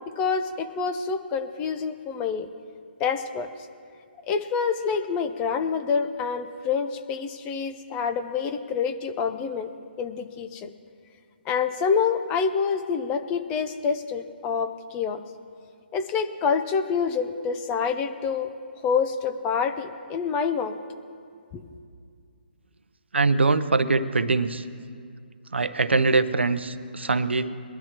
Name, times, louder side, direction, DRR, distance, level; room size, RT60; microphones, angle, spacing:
voice 1, 0.2-2.5 3.0-3.5 4.3-9.7 10.0-10.7 11.5-15.2 15.9-18.5 18.8-20.8 21.5-21.6, left 6 dB, 20° left, 8 dB, 0.7 m, -27 dB
voice 2, 23.1-24.6 25.5-27.5, right 3 dB, 85° right, 12 dB, 0.8 m, -23 dB
22.0 x 12.5 x 3.0 m, 2.3 s
hypercardioid pair, 145°, 6 cm